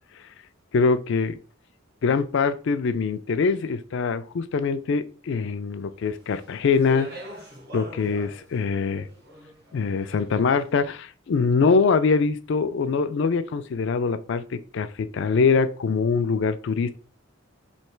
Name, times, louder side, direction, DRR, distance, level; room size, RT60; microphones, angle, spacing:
voice 1, 0.7-1.4 2.0-7.1 7.7-9.1 9.7-17.0, left 5 dB, 60° left, 0.4 m, -23 dB
Speech, 6.2-10.5, equal, 50° right, 1.1 m, -44 dB
3.2 x 2.8 x 4.4 m
head